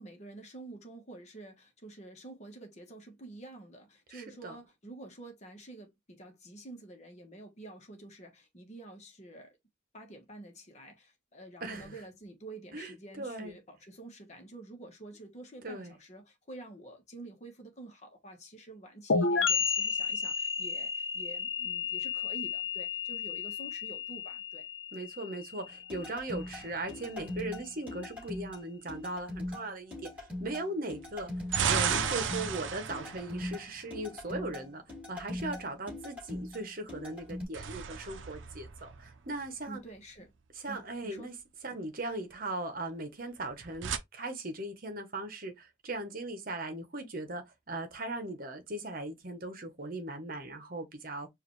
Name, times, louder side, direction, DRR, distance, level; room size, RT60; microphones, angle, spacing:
voice 1, 0.0-9.6 9.9-24.6 39.7-40.3 40.7-41.4, right 2 dB, 35° left, 1.2 m, -48 dB
voice 2, 4.1-4.5 11.6-11.9 12.7-13.6 15.6-15.9 24.9-31.3 31.6-34.8 35.1-39.8 40.6-41.3 41.6-51.3, right 2 dB, 45° right, 1.0 m, -39 dB
sound 1, 19.1-26.6, left 5 dB, 80° left, 0.7 m, -32 dB
sound 2, 25.9-37.5, left 1 dB, 5° right, 2.6 m, -41 dB
sound 3, 26.4-27.4 31.0-34.3 37.2-39.6 43.4-44.0, right 7 dB, 70° right, 0.6 m, -34 dB
4.8 x 2.6 x 3.1 m
head